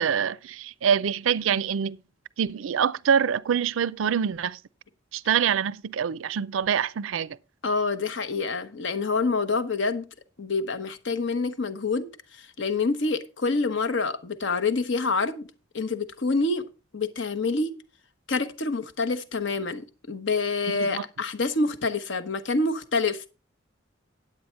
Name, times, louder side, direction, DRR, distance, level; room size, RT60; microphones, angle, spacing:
voice 1, 0.0-2.0 2.4-4.6 5.1-7.4 20.8-21.0, right 7 dB, 80° right, 0.4 m, -25 dB
voice 2, 7.6-10.1 10.4-12.1 12.4-15.5 15.7-16.6 16.9-17.7 18.3-23.3, left 3 dB, 65° left, 1.0 m, -27 dB
9.5 x 8.3 x 4.4 m
head